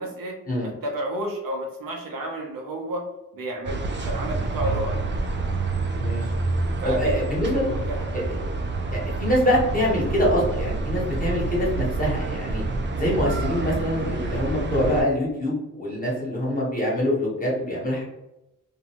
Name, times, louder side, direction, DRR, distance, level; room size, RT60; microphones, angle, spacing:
voice 1, 0.0-3.0 3.3-5.0 6.8-7.2 7.7-8.1, right 1 dB, 85° right, 0 dB, 0.7 m, -31 dB
sound 1, 3.6-15.0, right 3 dB, 35° right, 0.4 m, -27 dB
voice 2, 5.9-6.3 6.8-7.7 8.9-12.6 13.0-18.0, equal, 25° left, -4 dB, 1.2 m, -24 dB
2.6 x 2.2 x 3.0 m, 0.91 s
cardioid pair, 70°, 33 cm